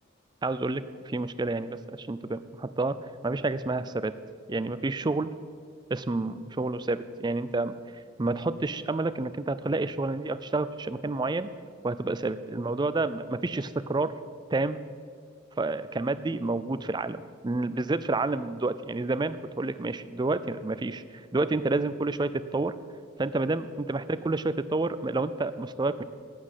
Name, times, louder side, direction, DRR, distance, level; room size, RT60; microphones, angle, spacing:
voice 1, 0.4-3.0 3.2-4.1 4.5-5.3 5.9-7.7 8.2-11.5 11.8-14.1 14.5-14.8 15.6-21.0 21.3-22.7 23.2-26.0, right 2 dB, 20° right, 13 dB, 0.4 m, -29 dB
12.5 x 8.4 x 7.5 m, 2.1 s
head